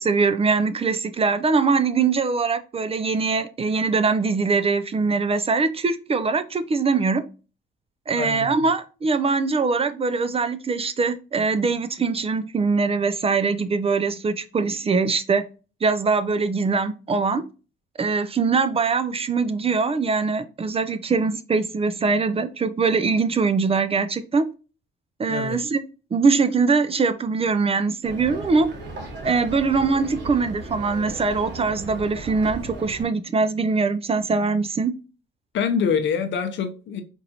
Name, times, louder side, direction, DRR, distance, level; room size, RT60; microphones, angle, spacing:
voice 1, 0.0-7.2 8.1-15.4 15.8-17.4 18.0-24.4 25.2-25.8 26.1-28.7 29.2-34.9, right 4 dB, 30° right, 0.4 m, -22 dB
voice 2, 8.1-8.5 25.3-25.6 35.5-37.0, left 6 dB, 70° left, 0.7 m, -25 dB
sound 1, 28.0-33.0, right 2 dB, 60° right, 1.4 m, -36 dB
4.5 x 2.7 x 2.8 m
cardioid pair, 90°, 20 cm